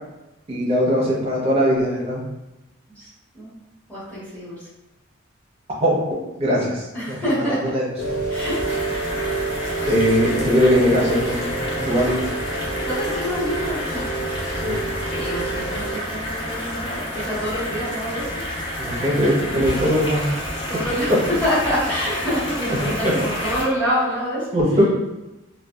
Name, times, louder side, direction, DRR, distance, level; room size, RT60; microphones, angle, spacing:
voice 1, 0.5-2.2 5.8-6.0 6.4-6.8 7.7-7.8 9.9-12.3 14.6-14.8 18.8-20.3 22.8-22.9 24.5-24.9, equal, 30° right, -4 dB, 0.6 m, -20 dB
voice 2, 3.9-4.5 6.9-7.7 8.3-8.6 12.8-18.4 20.7-24.8, equal, 10° left, -13 dB, 1.2 m, -27 dB
Rain, 8.0-15.9, right 3 dB, 75° left, 0.6 m, -28 dB
sound 1, 8.3-23.6, left 1 dB, 25° left, 0.5 m, -30 dB
2.6 x 2.2 x 2.2 m, 1.0 s
head